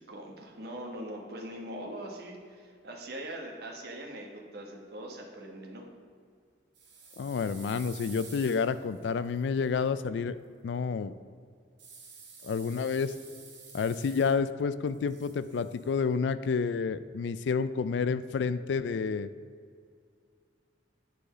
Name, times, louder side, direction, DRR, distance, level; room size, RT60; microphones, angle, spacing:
voice 1, 0.0-5.8, right 1 dB, 60° right, 1 dB, 1.3 m, -42 dB
sound 1, 6.7-9.8 11.8-14.6 14.9-15.9, right 5 dB, 85° right, 2.0 m, -51 dB
voice 2, 7.2-10.4 10.6-11.1 12.4-13.1 13.7-19.3, left 5 dB, 75° left, 14 dB, 0.3 m, -29 dB
9.3 x 5.0 x 5.0 m, 2.1 s
head